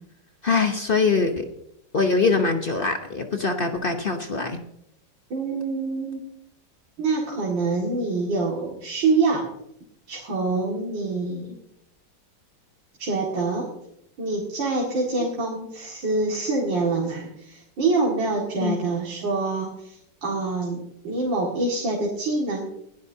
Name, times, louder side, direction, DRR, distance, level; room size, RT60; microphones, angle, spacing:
voice 1, 0.4-1.5 1.9-4.6 18.6-18.8, left 4 dB, 40° left, 5 dB, 0.8 m, -23 dB
voice 2, 5.3-6.2 7.0-9.5 10.1-11.6 13.0-13.7 14.2-22.7, right 3 dB, 85° right, -2 dB, 2.9 m, -26 dB
20.0 x 12.0 x 2.8 m, 0.75 s
omnidirectional pair, 2.0 m